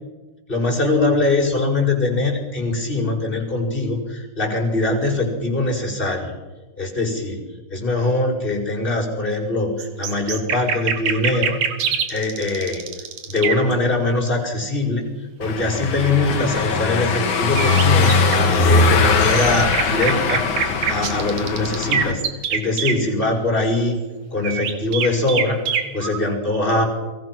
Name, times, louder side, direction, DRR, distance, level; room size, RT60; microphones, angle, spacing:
voice 1, 0.5-6.3 6.8-7.4 7.7-11.6 11.9-12.8 13.3-20.4 20.9-22.2 22.5-26.8, left 2 dB, 15° left, 1 dB, 5.6 m, -22 dB
sound 1, 9.8-13.7 17.6-18.6 19.0-23.0 24.4-26.2, right 7 dB, 80° right, 3.3 m, -24 dB
Car passing by / Engine, 15.4-22.1, left 4 dB, 85° left, 3.6 m, -20 dB
29.5 x 23.0 x 6.2 m, 1.2 s
omnidirectional pair, 3.3 m